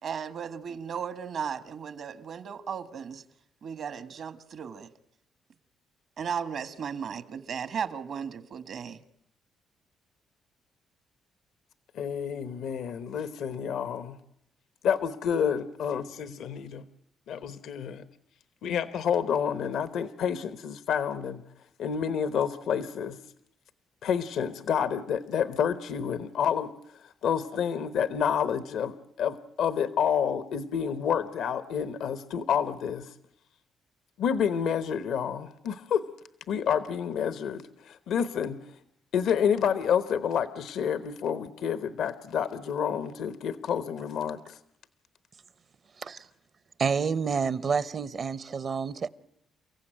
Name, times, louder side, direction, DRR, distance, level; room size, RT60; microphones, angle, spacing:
voice 1, 0.0-3.2 3.6-4.9 6.2-9.0, right 7 dB, 60° right, 1.5 m, -35 dB
voice 2, 11.9-14.2 14.8-16.8 17.3-18.0 18.6-21.4 21.8-23.2 24.0-26.7 27.2-33.1 34.2-36.1 36.5-38.6 39.1-44.6, left 8 dB, 75° left, 1.0 m, -29 dB
voice 3, 46.8-49.1, right 5 dB, 45° right, 0.9 m, -28 dB
29.5 x 15.5 x 9.0 m
cardioid pair, 90°, 0 cm